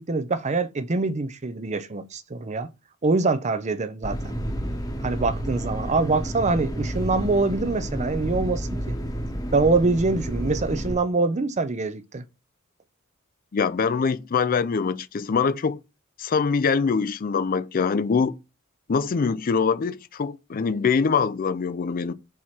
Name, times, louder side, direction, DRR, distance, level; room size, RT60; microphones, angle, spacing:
voice 1, 0.0-2.7 3.0-4.3 5.0-9.0 9.5-12.2, right 3 dB, 35° right, 0.6 m, -24 dB
sound 1, 4.0-11.0, equal, 15° left, 1.0 m, -30 dB
voice 2, 13.5-15.8 16.2-18.4 18.9-22.1, left 5 dB, 45° left, 0.4 m, -23 dB
4.7 x 4.2 x 5.9 m
head